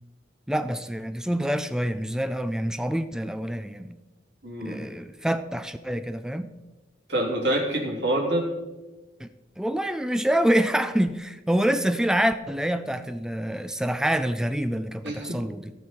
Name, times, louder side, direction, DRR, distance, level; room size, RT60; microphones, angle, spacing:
voice 1, 0.5-4.0 4.6-6.5 9.2-9.3 9.6-15.7, equal, 5° right, 11 dB, 0.3 m, -26 dB
voice 2, 4.4-4.8 7.1-8.5 15.0-15.4, right 1 dB, 70° right, -2 dB, 3.0 m, -26 dB
17.0 x 6.3 x 4.4 m, 1.1 s
head